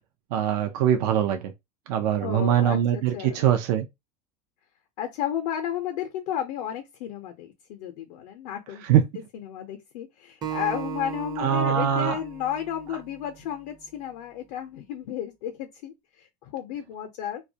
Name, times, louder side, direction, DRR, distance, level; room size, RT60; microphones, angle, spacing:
voice 1, 0.3-1.5 1.9-3.9 8.8-9.0 11.4-12.2, right 10 dB, 75° right, 0.5 m, -22 dB
voice 2, 2.2-3.5 5.0-8.9 9.3-17.4, left 10 dB, 75° left, 0.6 m, -33 dB
Acoustic guitar, 10.4-13.7, right 10 dB, 20° right, 0.5 m, -37 dB
2.3 x 2.1 x 2.7 m
supercardioid pair, 125°, 21 cm